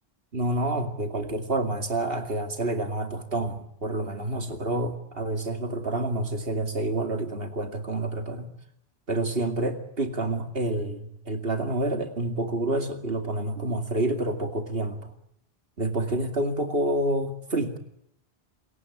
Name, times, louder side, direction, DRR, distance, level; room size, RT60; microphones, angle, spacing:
voice 1, 0.3-8.5 9.1-15.1 15.8-17.8, right 2 dB, 65° right, 6 dB, 2.7 m, -28 dB
27.5 x 15.0 x 10.0 m, 0.77 s
omnidirectional pair, 1.0 m